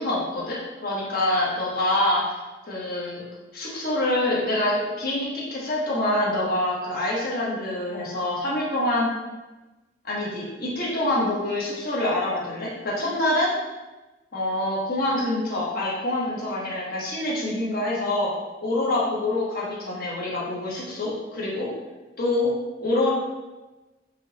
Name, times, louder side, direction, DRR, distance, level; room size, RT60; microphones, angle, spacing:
voice 1, 0.0-2.2 2.7-3.2 3.5-9.1 10.0-13.5 14.3-18.3 18.6-21.7 22.2-22.5 22.8-23.1, left 1 dB, 60° left, -5 dB, 1.3 m, -26 dB
4.8 x 2.9 x 3.0 m, 1.1 s
head